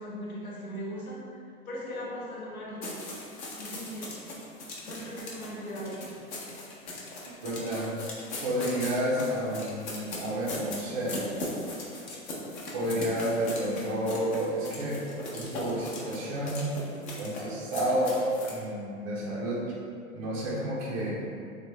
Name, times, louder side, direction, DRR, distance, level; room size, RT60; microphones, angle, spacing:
voice 1, 0.0-3.0 3.6-4.2 4.8-6.1, equal, 85° left, -5 dB, 0.9 m, -39 dB
sound 1, 2.8-18.6, left 1 dB, 50° left, 0.8 m, -39 dB
voice 2, 7.4-8.0 8.4-11.2 12.7-15.0 15.3-16.7 17.2-18.2 18.5-19.6 20.1-21.2, equal, 25° right, -7 dB, 0.3 m, -30 dB
3.2 x 2.1 x 3.0 m, 2.4 s
hypercardioid pair, 115°, 43 cm